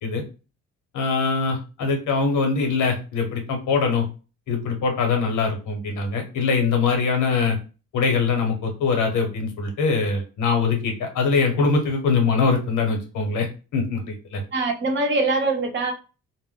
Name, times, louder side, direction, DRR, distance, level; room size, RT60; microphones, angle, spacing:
voice 1, 0.9-4.1 4.5-7.6 7.9-13.5 13.7-14.4, left 4 dB, 75° left, 0.9 m, -22 dB
voice 2, 14.5-15.9, right 2 dB, 40° right, 0.7 m, -23 dB
2.1 x 2.1 x 3.7 m
cardioid pair, 90°, 30 cm